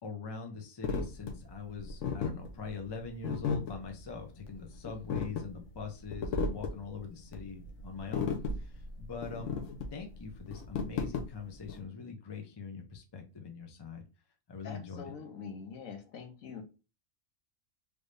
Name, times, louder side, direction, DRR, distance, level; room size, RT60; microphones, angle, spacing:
voice 1, 0.0-8.3 8.6-9.6 9.9-14.0 14.5-15.1, left 5 dB, 30° left, 4 dB, 0.4 m, -43 dB
sound 1, 0.8-11.8, left 4 dB, 70° left, 1.0 m, -36 dB
voice 2, 14.6-16.6, left 5 dB, 85° left, 5 dB, 1.2 m, -44 dB
3.4 x 2.6 x 3.2 m, 0.32 s
omnidirectional pair, 1.4 m